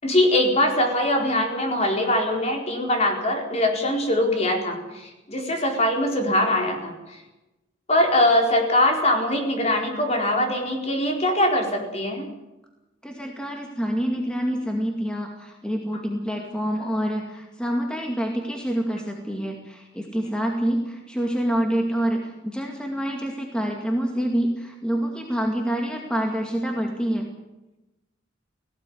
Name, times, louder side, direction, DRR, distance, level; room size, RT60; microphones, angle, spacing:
voice 1, 0.0-7.0 7.9-12.3, left 1 dB, 35° left, 2 dB, 4.5 m, -22 dB
voice 2, 13.0-27.3, equal, 5° left, 1 dB, 2.3 m, -27 dB
18.0 x 16.5 x 9.6 m, 0.99 s
head